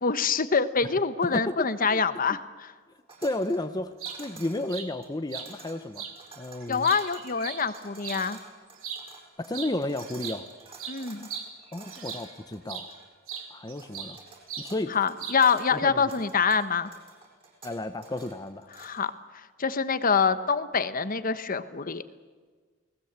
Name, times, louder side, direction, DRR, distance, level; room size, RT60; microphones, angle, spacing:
voice 1, 0.0-2.7 6.7-8.4 10.9-11.3 14.9-16.9 18.8-19.1 19.6-22.0, left 5 dB, 45° left, 12 dB, 1.1 m, -25 dB
voice 2, 1.2-2.0 2.3-2.4 3.2-6.1 6.3-6.9 9.4-10.5 11.7-12.9 13.5-14.2 14.6-15.0 15.7-16.0 17.6-18.7, left 1 dB, 20° left, 8 dB, 0.8 m, -32 dB
sound 1, 3.1-19.0, right 3 dB, 30° right, 7.5 m, -50 dB
sound 2, 3.8-4.2 4.7-4.9 5.3-5.5 5.9-6.1 6.6-8.2 8.8-9.0 9.5-9.7 10.0-12.3 12.7-12.9 13.3-14.2 14.5-14.7 15.2-15.6, right 8 dB, 85° right, 3.5 m, -38 dB
29.0 x 19.5 x 8.2 m, 1.5 s
head